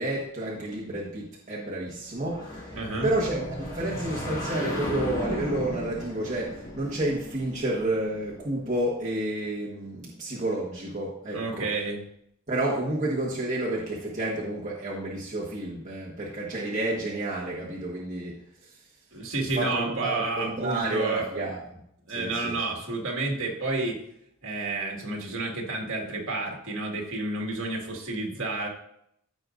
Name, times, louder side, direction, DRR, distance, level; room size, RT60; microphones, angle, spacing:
voice 1, 0.0-2.7 3.0-11.7 12.5-18.8 19.5-21.6 22.1-22.6, right 1 dB, 35° right, -6 dB, 1.4 m, -30 dB
sound 1, 2.1-8.7, left 1 dB, 60° left, 3.1 m, -36 dB
voice 2, 2.7-3.1 11.3-12.0 19.1-21.5 22.1-24.0 24.4-28.7, right 2 dB, 60° right, -1 dB, 2.0 m, -30 dB
14.5 x 5.2 x 2.6 m, 0.73 s
head